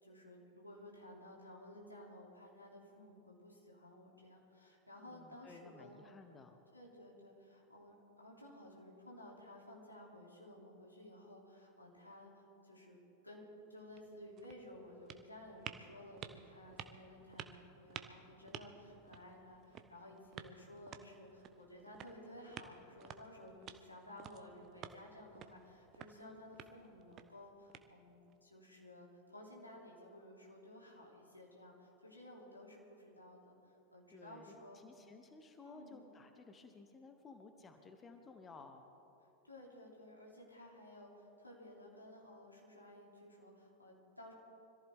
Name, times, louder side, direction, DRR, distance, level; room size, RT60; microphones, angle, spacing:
voice 1, 0.0-6.0 6.7-13.0 13.2-34.8 35.6-36.1 39.4-44.3, left 1 dB, 85° left, -3 dB, 3.2 m, -55 dB
voice 2, 5.1-6.6 26.2-26.4 34.1-38.9, left 3 dB, 20° left, 6 dB, 1.1 m, -56 dB
sound 1, 13.8-28.3, right 9 dB, 30° right, 0.8 m, -54 dB
25.0 x 14.5 x 3.7 m, 2.9 s
figure-of-eight pair, 90°, 0 cm